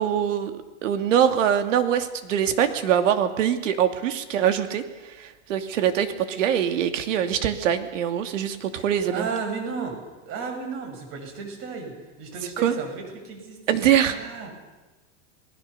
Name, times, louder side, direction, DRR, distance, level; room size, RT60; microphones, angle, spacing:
voice 1, 0.0-4.8 5.2-9.3 12.6-12.7 13.7-14.2, right 9 dB, 85° right, 8 dB, 2.8 m, -23 dB
voice 2, 8.7-10.0 10.2-13.6 13.9-14.5, right 5 dB, 35° right, 4 dB, 6.5 m, -34 dB
28.5 x 20.0 x 6.9 m, 1.1 s
supercardioid pair, 165°, 37 cm